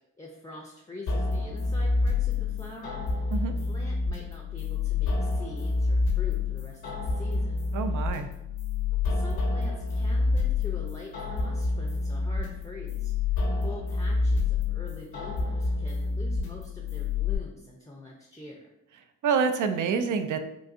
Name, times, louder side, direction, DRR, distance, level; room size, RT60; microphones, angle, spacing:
voice 1, 0.2-3.2 3.6-7.6 9.0-18.6, left 1 dB, 10° left, -1 dB, 0.6 m, -45 dB
sound 1, 1.1-17.4, left 3 dB, 75° left, 0.9 m, -28 dB
voice 2, 7.7-8.3 19.2-20.4, right 6 dB, 55° right, 9 dB, 0.5 m, -27 dB
3.8 x 2.5 x 2.5 m, 0.85 s
supercardioid pair, 65°, 37 cm